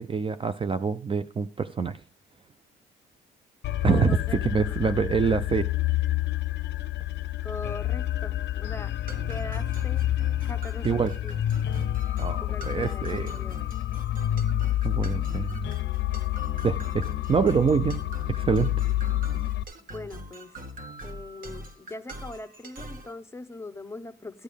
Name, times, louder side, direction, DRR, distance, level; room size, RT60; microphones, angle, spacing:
voice 1, 0.0-2.0 3.8-5.7 10.8-11.1 12.2-13.3 14.8-15.7 16.6-18.0 18.3-18.7, right 6 dB, 25° right, 0.4 m, -25 dB
sound 1, 3.6-19.6, left 13 dB, 60° left, 0.6 m, -28 dB
voice 2, 3.8-4.8 7.4-8.9 9.3-10.1 10.4-11.4 12.4-13.7 19.9-20.6 21.0-24.4, left 2 dB, 15° left, 0.8 m, -41 dB
sound 2, 9.1-23.1, right 1 dB, 45° right, 1.6 m, -42 dB
13.0 x 8.2 x 3.4 m
cardioid pair, 90°, 20 cm